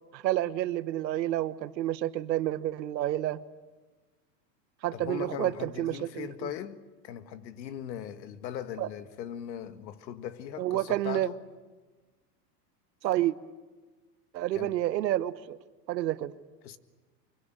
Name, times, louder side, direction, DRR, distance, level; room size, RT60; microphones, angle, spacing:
voice 1, 0.1-3.4 4.8-6.3 8.8-8.9 10.6-11.3 13.0-13.3 14.3-15.6 15.9-16.3, right 14 dB, 90° right, 1.3 m, -29 dB
voice 2, 4.9-6.8 7.0-11.4 14.5-14.8 16.6-16.8, left 9 dB, 80° left, 1.9 m, -39 dB
25.0 x 23.0 x 9.2 m
supercardioid pair, 155°, 50 cm